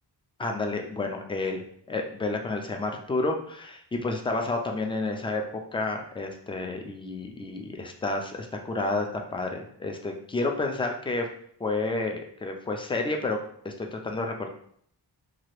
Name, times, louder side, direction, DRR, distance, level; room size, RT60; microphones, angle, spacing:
voice 1, 0.4-1.6 1.9-11.3 11.6-13.4 13.6-14.5, left 2 dB, 15° left, 3 dB, 0.3 m, -30 dB
2.8 x 2.5 x 3.1 m, 0.64 s
cardioid pair, 95°, 44 cm